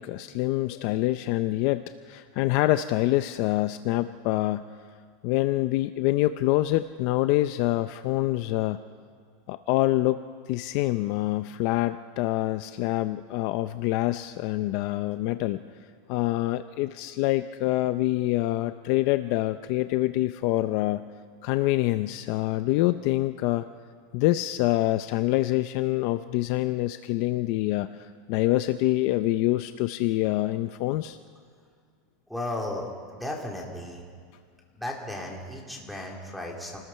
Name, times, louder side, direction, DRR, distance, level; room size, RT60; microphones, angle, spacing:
voice 1, 0.0-4.7 5.2-8.8 9.5-10.2 10.5-15.6 16.1-21.0 21.4-23.7 24.1-31.2, left 16 dB, 40° left, 11 dB, 0.5 m, -26 dB
voice 2, 32.3-34.0 34.7-36.8, left 1 dB, ahead, -2 dB, 2.5 m, -35 dB
28.0 x 19.5 x 5.6 m, 2.1 s
supercardioid pair, 180°, 0 cm